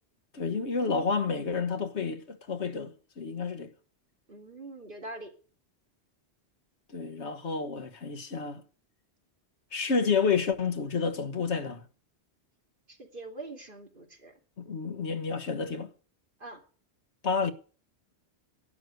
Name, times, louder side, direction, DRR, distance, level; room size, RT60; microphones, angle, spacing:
voice 1, 0.3-3.7 6.9-8.6 9.7-11.8 14.6-15.9 17.2-17.5, left 5 dB, 85° left, 1.6 m, -30 dB
voice 2, 4.3-5.3 12.9-14.3 16.4-16.6, right 2 dB, 50° right, 2.9 m, -43 dB
11.5 x 9.5 x 7.8 m
omnidirectional pair, 1.1 m